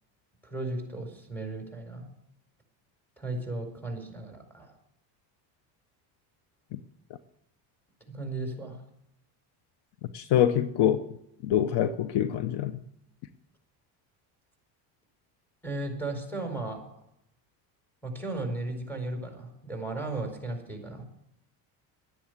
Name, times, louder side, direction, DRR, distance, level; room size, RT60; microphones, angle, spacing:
voice 1, 0.4-2.0 3.2-4.8 8.1-8.8 15.6-16.8 18.0-21.0, right 2 dB, 5° left, 4.7 m, -35 dB
voice 2, 10.1-11.1 11.4-12.8, left 10 dB, 60° left, 0.9 m, -25 dB
11.5 x 10.0 x 8.0 m
supercardioid pair, 100°, 46 cm